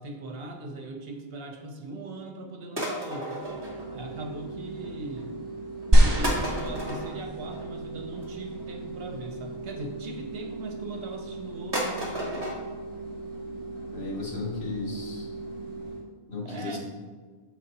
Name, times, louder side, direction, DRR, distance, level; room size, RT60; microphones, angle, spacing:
voice 1, 0.0-3.5 3.9-5.3 6.0-12.5 16.4-16.8, right 2 dB, 70° right, 4 dB, 1.0 m, -39 dB
sound 1, 2.8-4.5 4.8-5.2 5.8-5.9 6.2-9.8 10.5-11.1 11.4-11.5 11.7-12.6 12.9-13.0 13.3-13.4 13.8-13.9 14.1-14.2 14.6-14.7 14.9-15.0 15.5-15.6 15.8-15.9, equal, 25° right, 1.3 m, -35 dB
sound 2, 3.4-16.0, right 3 dB, 60° left, 1.6 m, -39 dB
sound 3, 5.9-7.4 8.2-8.3, right 1 dB, 45° right, 1.2 m, -21 dB
voice 2, 13.9-15.3 16.3-16.8, left 3 dB, 75° left, -4 dB, 1.8 m, -34 dB
6.7 x 4.6 x 4.1 m, 1.5 s
omnidirectional pair, 1.1 m